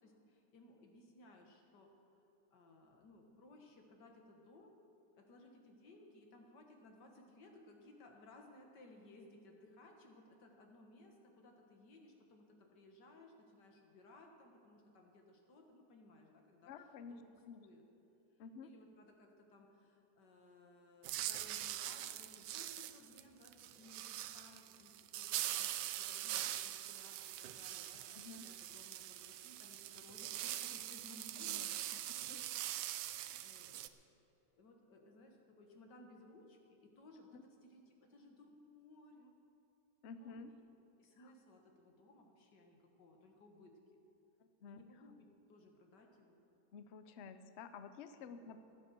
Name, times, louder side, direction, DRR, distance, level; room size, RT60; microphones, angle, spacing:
voice 1, 0.0-1.9 2.5-4.7 5.2-16.7 17.1-17.8 18.6-25.7 26.0-32.5 32.9-34.0 34.4-39.3 40.2-40.6 41.0-44.0 44.6-46.4 48.4-48.6, left 2 dB, 90° left, 2 dB, 2.2 m, -61 dB
voice 2, 16.7-17.2 17.4-17.6 18.4-18.7 28.1-28.5 31.4-32.0 32.3-32.4 37.3-37.4 40.0-40.5 41.2-41.3 44.4-44.8 46.7-48.6, left 5 dB, 55° left, 10 dB, 0.8 m, -52 dB
sound 1, 21.0-33.9, right 13 dB, 85° right, 1.2 m, -43 dB
15.0 x 9.7 x 6.9 m, 2.9 s
omnidirectional pair, 1.8 m